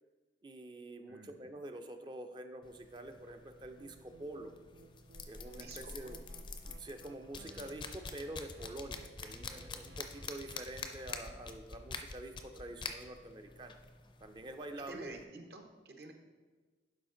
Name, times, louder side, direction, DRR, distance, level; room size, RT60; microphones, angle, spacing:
voice 1, 0.4-4.5 5.3-6.2 6.6-13.8 14.2-15.1, right 1 dB, 25° right, 6 dB, 0.5 m, -47 dB
voice 2, 1.1-1.4 5.5-6.1 14.8-16.1, right 2 dB, 65° right, 4 dB, 1.0 m, -50 dB
sound 1, 2.6-15.2, left 4 dB, 30° left, 0.5 m, -47 dB
sound 2, 3.8-11.5, right 3 dB, 80° right, 0.7 m, -60 dB
11.5 x 4.9 x 3.8 m, 1.3 s
head